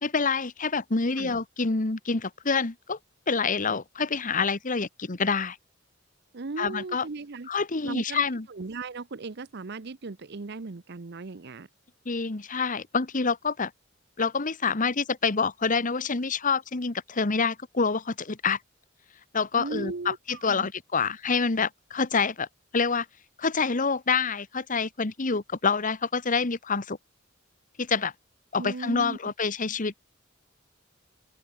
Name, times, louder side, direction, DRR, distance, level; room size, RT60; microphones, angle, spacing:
voice 1, 0.0-3.0 3.3-5.6 6.6-7.1 7.5-8.5 12.0-13.7 14.2-18.6 19.3-22.5 22.7-23.1 23.4-27.0 27.8-28.1 28.5-29.9, left 4 dB, 40° left, 1.2 m, -27 dB
voice 2, 6.3-7.5 7.8-8.2 8.5-11.7 19.5-20.2 20.5-20.7 28.6-29.2, right 3 dB, 55° right, 0.8 m, -37 dB
open air
head